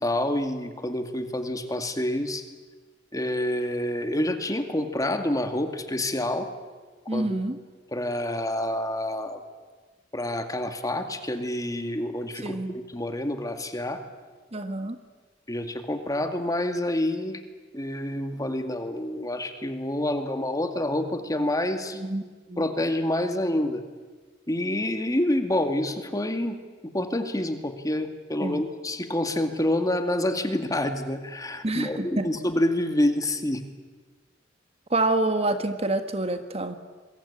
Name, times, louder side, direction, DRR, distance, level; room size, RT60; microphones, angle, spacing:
voice 1, 0.0-2.4 3.1-6.5 7.1-7.4 7.9-9.4 10.1-14.0 15.5-17.4 17.7-22.0 22.6-23.8 24.5-26.6 26.9-33.6, left 1 dB, 20° left, 6 dB, 2.2 m, -27 dB
voice 2, 7.1-7.6 12.4-12.8 14.5-15.0 21.9-22.2 22.5-22.6 28.4-28.6 31.6-32.3 34.9-36.7, right 2 dB, 35° right, 8 dB, 1.5 m, -27 dB
27.5 x 23.0 x 8.8 m, 1.4 s
head